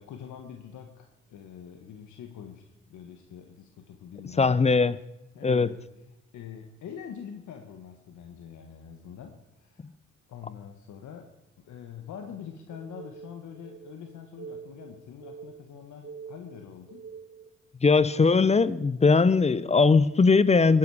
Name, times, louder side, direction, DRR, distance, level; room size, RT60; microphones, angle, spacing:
voice 1, 0.0-4.7 5.3-5.9 6.3-9.9 10.3-11.3 11.6-17.0, left 8 dB, 75° left, 4 dB, 1.4 m, -44 dB
voice 2, 4.4-5.0 5.4-5.7 17.8-20.8, left 4 dB, 20° left, 17 dB, 0.6 m, -20 dB
sound 1, 12.7-17.5, right 6 dB, 50° right, 2.2 m, -45 dB
20.0 x 10.0 x 4.8 m, 0.91 s
cardioid pair, 90°, 30 cm